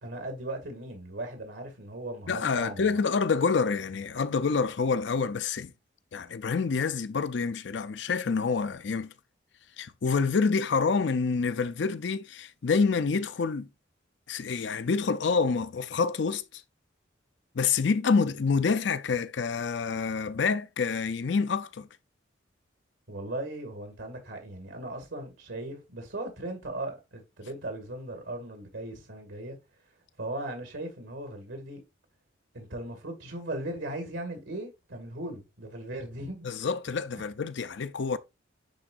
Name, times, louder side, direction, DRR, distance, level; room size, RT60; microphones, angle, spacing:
voice 1, 0.0-2.9 23.1-29.6 30.2-31.8 32.5-36.5, right 1 dB, 85° right, 2.1 m, -38 dB
voice 2, 2.3-5.7 6.1-9.1 9.8-13.7 14.3-16.6 17.5-21.9 36.4-38.2, left 5 dB, 65° left, 0.5 m, -27 dB
10.5 x 3.8 x 2.5 m
head